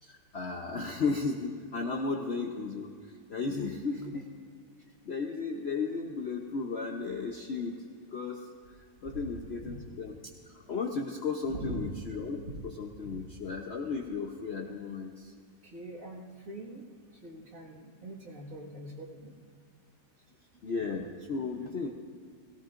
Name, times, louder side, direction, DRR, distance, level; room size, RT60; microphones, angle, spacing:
voice 1, 0.0-2.9 3.3-4.3 5.0-7.8 8.1-8.5 9.0-10.2 10.5-15.3 20.6-21.9, left 4 dB, 55° left, 2 dB, 0.7 m, -34 dB
voice 2, 15.6-16.8 17.1-19.3, right 1 dB, 50° right, -3 dB, 2.1 m, -43 dB
18.0 x 17.0 x 2.5 m, 2.1 s
omnidirectional pair, 1.9 m